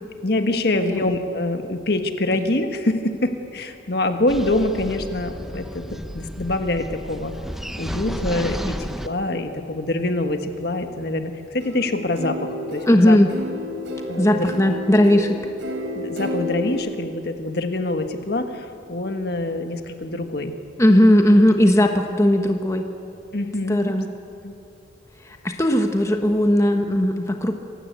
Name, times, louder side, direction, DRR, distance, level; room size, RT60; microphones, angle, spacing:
voice 1, 0.2-7.3 7.8-13.2 14.1-14.5 15.9-20.5 23.3-23.9 24.4-24.5, left 2 dB, 55° left, 6 dB, 1.6 m, -25 dB
voice 2, 0.7-1.1 12.8-13.3 14.2-15.4 20.8-22.9 23.7-24.1 25.2-27.6, left 1 dB, 15° left, 4 dB, 1.1 m, -17 dB
sound 1, 4.3-9.1, equal, ahead, 0.8 m, -32 dB
sound 2, 11.6-16.7, left 1 dB, 75° right, 4.1 m, -31 dB
26.5 x 16.0 x 8.2 m, 2.8 s
head